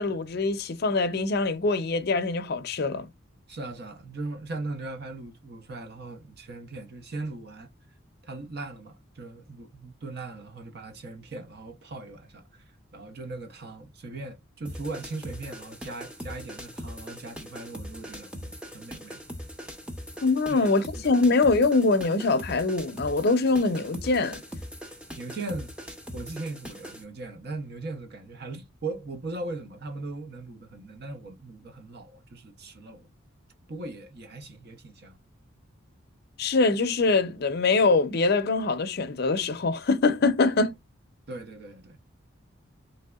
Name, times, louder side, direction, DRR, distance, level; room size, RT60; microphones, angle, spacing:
voice 1, 0.0-3.1 20.2-24.4 36.4-40.8, left 3 dB, 50° left, 0.5 m, -23 dB
voice 2, 3.5-7.7 8.2-12.4 12.9-19.2 20.5-20.7 21.1-21.2 25.2-25.7 26.1-33.1 33.7-35.2 41.3-42.0, right 2 dB, 50° right, 0.7 m, -39 dB
sound 1, 14.7-27.0, equal, 5° right, 0.5 m, -41 dB
3.3 x 2.7 x 2.3 m
head